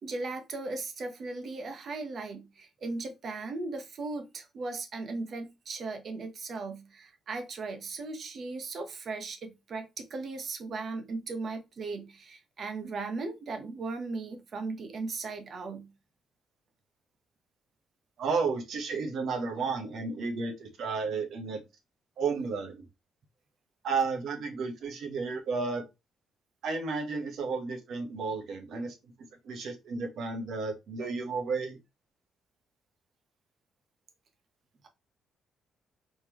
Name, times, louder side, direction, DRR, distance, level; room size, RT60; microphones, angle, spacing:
voice 1, 0.0-15.9, right 3 dB, 55° right, 1.1 m, -37 dB
voice 2, 18.2-21.6 22.2-22.8 23.8-25.8 26.6-28.9 29.4-31.8, right 4 dB, 70° right, 1.5 m, -32 dB
4.3 x 3.5 x 3.1 m
cardioid pair, 90°, 0 cm